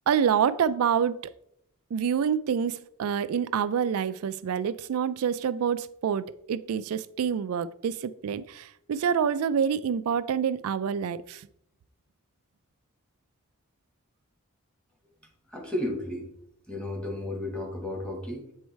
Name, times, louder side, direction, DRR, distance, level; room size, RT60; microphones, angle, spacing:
voice 1, 0.1-1.2 1.9-11.4, right 7 dB, 80° right, 15 dB, 0.3 m, -27 dB
voice 2, 15.5-16.3 16.7-18.5, left 1 dB, 5° left, 0 dB, 1.3 m, -33 dB
8.0 x 4.6 x 3.1 m, 0.74 s
head